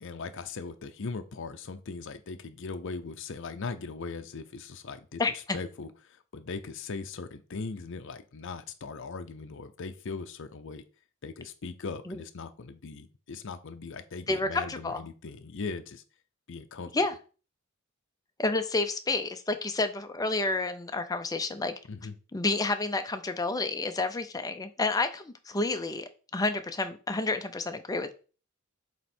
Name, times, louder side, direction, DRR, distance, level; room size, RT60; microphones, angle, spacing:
voice 1, 0.0-5.2 5.5-10.8 11.2-16.0 16.5-16.9 21.9-22.2, left 4 dB, 60° left, 8 dB, 0.6 m, -39 dB
voice 2, 5.2-5.6 12.1-12.2 14.3-15.1 16.9-17.1 18.4-21.7 22.3-28.1, left 3 dB, 15° left, 8 dB, 0.6 m, -30 dB
7.6 x 3.1 x 4.4 m, 0.36 s
head